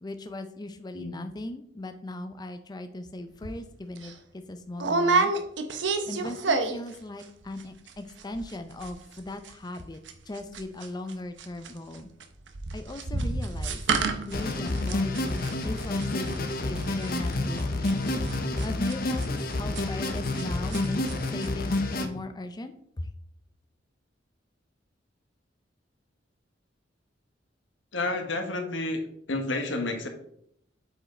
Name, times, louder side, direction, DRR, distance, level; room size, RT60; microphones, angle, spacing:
voice 1, 0.0-4.1 4.5-5.3 6.0-10.0 10.3-12.1 12.7-18.1 18.6-21.0 21.3-23.1, left 2 dB, 20° left, 8 dB, 0.5 m, -38 dB
sound 1, 3.4-3.6 4.0-4.1 4.8-6.9 7.2-7.6 7.9-8.0 8.2-8.5 8.8-20.4 20.7-21.1 21.4-21.5, right 3 dB, 70° right, 0.9 m, -29 dB
sound 2, 14.3-22.1, left 2 dB, 55° left, 0.9 m, -29 dB
voice 2, 27.9-29.0 29.3-30.1, left 2 dB, 85° left, 5 dB, 1.3 m, -30 dB
7.9 x 4.8 x 4.2 m, 0.70 s
head